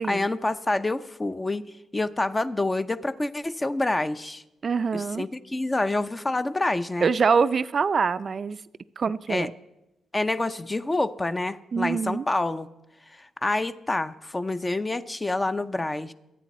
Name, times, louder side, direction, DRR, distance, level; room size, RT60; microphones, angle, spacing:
voice 1, 0.0-1.6 1.9-4.4 4.9-7.1 9.3-9.5 10.1-12.7 13.2-16.1, left 2 dB, 20° left, 11 dB, 0.6 m, -27 dB
voice 2, 4.6-5.2 7.0-8.6 9.0-9.5 11.7-12.2, right 5 dB, 45° right, 15 dB, 0.4 m, -24 dB
24.5 x 9.1 x 4.2 m, 0.94 s
cardioid pair, 100°, 0 cm